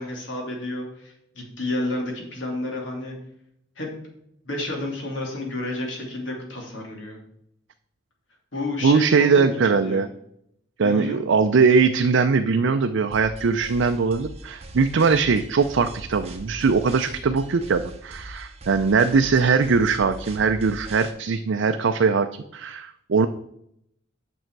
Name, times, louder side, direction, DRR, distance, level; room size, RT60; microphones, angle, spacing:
voice 1, 0.0-3.2 3.8-3.9 4.4-7.2 8.5-10.0 10.8-11.2, left 2 dB, 75° left, 0 dB, 2.5 m, -31 dB
voice 2, 8.8-10.1 10.8-23.3, right 5 dB, 75° right, 7 dB, 0.5 m, -21 dB
sound 1, 13.1-21.1, right 1 dB, 30° right, 1.0 m, -40 dB
9.0 x 6.2 x 4.6 m, 0.75 s
head